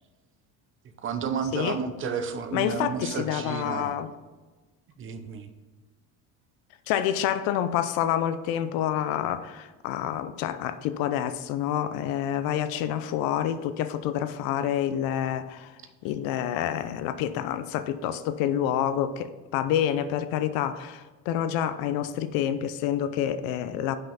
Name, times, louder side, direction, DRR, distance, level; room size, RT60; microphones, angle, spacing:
voice 1, 1.0-4.0 5.0-5.5, right 6 dB, 35° right, 8 dB, 0.8 m, -31 dB
voice 2, 2.5-4.1 6.9-15.7 16.0-24.0, left 10 dB, 75° left, 12 dB, 0.7 m, -28 dB
5.8 x 5.6 x 5.5 m, 1.2 s
cardioid pair, 120°, 35 cm